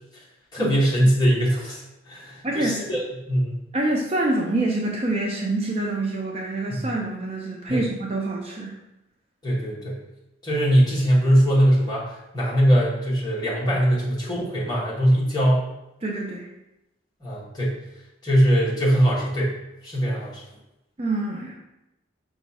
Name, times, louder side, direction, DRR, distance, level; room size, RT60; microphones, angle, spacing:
voice 1, 0.5-1.8 2.1-3.0 3.3-3.6 6.7-6.9 7.7-7.8 9.4-10.0 10.4-15.7 17.2-17.8 18.2-19.6 19.8-20.4, equal, 20° left, -6 dB, 1.1 m, -21 dB
voice 2, 2.4-2.8 3.7-8.7 16.0-16.5 21.0-21.6, right 2 dB, 30° right, 0 dB, 0.4 m, -26 dB
5.2 x 2.3 x 4.1 m, 0.92 s
head